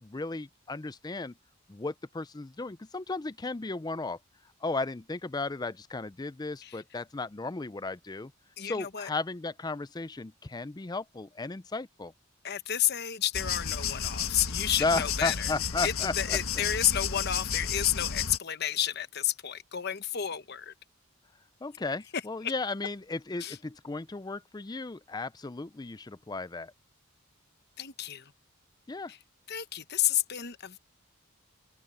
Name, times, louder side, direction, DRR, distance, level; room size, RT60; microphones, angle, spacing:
voice 1, 0.0-1.3 1.7-4.2 4.6-8.3 8.6-12.1 14.8-16.4 21.6-26.7 28.9-29.1, left 3 dB, 20° left, 0.4 m, -34 dB
voice 2, 8.6-9.1 12.4-15.5 15.8-20.7 22.1-22.5 23.4-23.6 27.8-28.3 29.1-29.2 29.5-30.8, left 10 dB, 50° left, 1.0 m, -31 dB
sound 1, 13.3-18.4, left 7 dB, 80° left, 1.4 m, -32 dB
open air
head